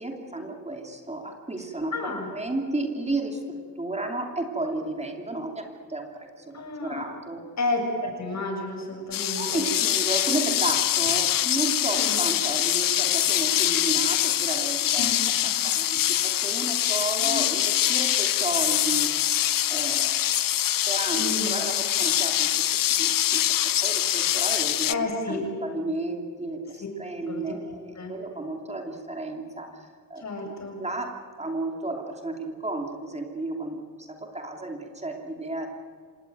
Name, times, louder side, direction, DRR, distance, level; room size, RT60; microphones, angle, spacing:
voice 1, 0.0-7.4 9.3-19.1 19.7-20.3 20.7-23.4 23.8-30.5 30.8-35.7, right 2 dB, 20° right, 3 dB, 2.7 m, -33 dB
voice 2, 1.9-2.3 6.5-7.0 7.6-9.6 11.9-12.1 15.0-15.2 17.2-17.5 21.1-21.6 24.9-25.4 27.3-28.1 30.2-30.8, left 2 dB, 55° left, 3 dB, 6.7 m, -31 dB
sound 1, 9.1-24.9, left 12 dB, 90° left, 0.7 m, -24 dB
26.5 x 19.0 x 9.1 m, 2.1 s
wide cardioid pair, 115°, 32 cm